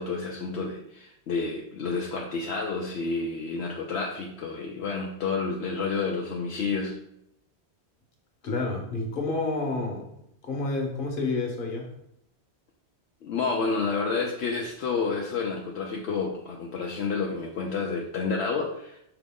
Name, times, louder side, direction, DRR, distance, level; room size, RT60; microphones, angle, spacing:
voice 1, 0.0-6.9 13.2-19.0, left 4 dB, 75° left, -1 dB, 0.9 m, -30 dB
voice 2, 8.4-10.1 10.4-11.9, left 3 dB, 50° left, 1 dB, 1.1 m, -29 dB
5.0 x 3.0 x 3.6 m, 0.76 s
omnidirectional pair, 1.1 m